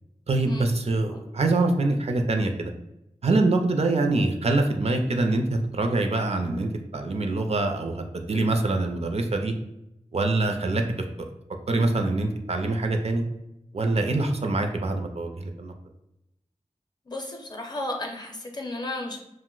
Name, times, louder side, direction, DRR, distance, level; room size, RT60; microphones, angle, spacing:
voice 1, 0.3-2.7 3.2-9.5 10.1-10.8 11.7-13.2 13.7-15.7, right 2 dB, 55° right, 4 dB, 0.4 m, -24 dB
voice 2, 17.1-19.2, left 2 dB, 35° left, 2 dB, 0.6 m, -34 dB
2.5 x 2.0 x 3.7 m, 0.87 s
wide cardioid pair, 75°, 13 cm